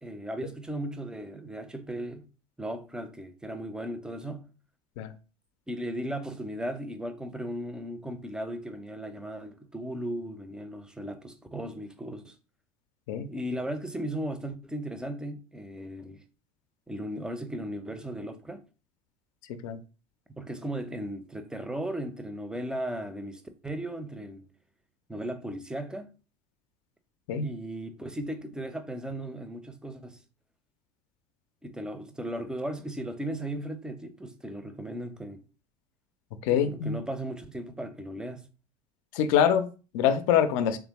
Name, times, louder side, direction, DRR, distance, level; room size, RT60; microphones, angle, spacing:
voice 1, 0.0-2.3 2.6-4.5 5.7-12.4 13.3-16.2 16.9-18.6 20.4-24.4 25.1-26.1 27.4-30.2 31.6-35.4 36.5-38.5, right 1 dB, 5° right, 0.5 m, -36 dB
voice 2, 36.5-37.0 39.1-40.8, left 8 dB, 55° left, 0.5 m, -24 dB
3.5 x 3.3 x 3.0 m
figure-of-eight pair, 70°, 20 cm